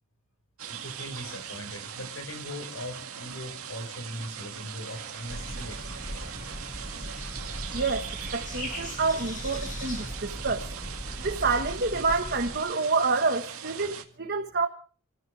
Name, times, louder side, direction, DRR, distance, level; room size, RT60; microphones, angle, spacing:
sound 1, 0.6-14.0, right 8 dB, 80° right, 2.0 m, -40 dB
voice 1, 0.8-5.8 6.0-6.4, left 1 dB, 70° left, 6 dB, 5.4 m, -40 dB
sound 2, 4.9-10.2, left 2 dB, 35° left, 7.9 m, -44 dB
sound 3, 5.3-12.6, equal, 15° right, 1.5 m, -39 dB
voice 2, 7.7-10.6 11.2-14.7, right 4 dB, 50° right, 3 dB, 1.4 m, -28 dB
29.0 x 14.5 x 3.4 m, 0.40 s
head